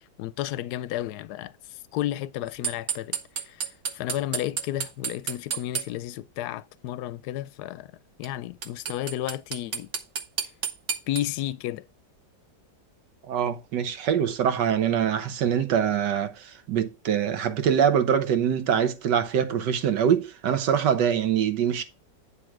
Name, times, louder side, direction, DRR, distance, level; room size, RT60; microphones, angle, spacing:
voice 1, 0.2-7.9 8.2-9.9 11.1-11.9, left 13 dB, 75° left, 1.1 m, -32 dB
sound 1, 2.6-5.9 8.2-8.3 8.6-11.2, right 6 dB, 50° right, 1.2 m, -29 dB
voice 2, 13.3-21.8, right 8 dB, 80° right, 1.6 m, -24 dB
9.8 x 3.7 x 5.9 m
omnidirectional pair, 1.8 m